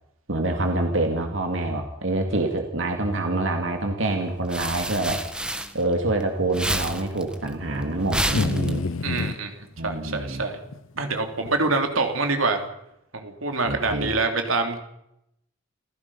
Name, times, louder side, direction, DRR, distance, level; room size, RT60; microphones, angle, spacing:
voice 1, 0.3-5.2 5.7-8.8 9.8-10.4 13.6-14.1, right 2 dB, 70° right, 4 dB, 2.4 m, -26 dB
sound 1, 4.1-6.2 6.5-9.2, right 1 dB, 5° right, 1.4 m, -30 dB
sound 2, 8.3-9.4 10.7-10.8 11.5-11.6, left 3 dB, 75° left, 0.7 m, -27 dB
voice 2, 9.0-10.6 11.0-12.6 13.1-14.8, right 3 dB, 90° right, 5 dB, 3.3 m, -25 dB
28.5 x 16.0 x 5.7 m, 0.80 s
head